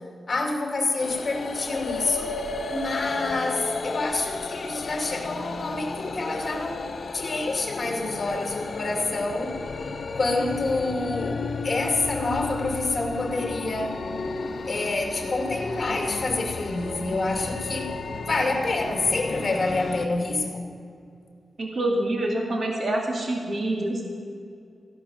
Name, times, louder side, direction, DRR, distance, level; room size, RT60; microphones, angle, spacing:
voice 1, 0.3-2.4 2.7-9.6 10.1-14.0 14.7-17.9 18.2-20.7, left 2 dB, 35° left, 2 dB, 2.3 m, -27 dB
sound 1, 1.0-20.1, left 3 dB, 60° left, 1.0 m, -33 dB
voice 2, 21.6-24.0, right 1 dB, 45° right, 0 dB, 2.2 m, -26 dB
14.5 x 11.0 x 7.0 m, 2.4 s
wide cardioid pair, 125°, 0 cm